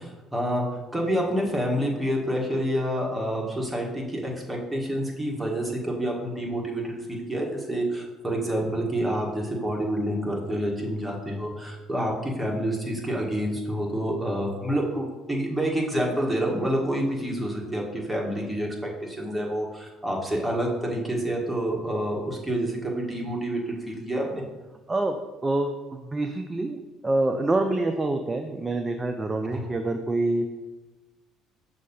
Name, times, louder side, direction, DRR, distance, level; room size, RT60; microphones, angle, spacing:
voice 1, 0.0-24.4 29.5-29.7, equal, 5° right, -2 dB, 1.7 m, -28 dB
voice 2, 24.9-30.5, right 2 dB, 25° right, 6 dB, 0.5 m, -26 dB
6.2 x 2.8 x 5.5 m, 1.1 s
hypercardioid pair, 55°, 0 cm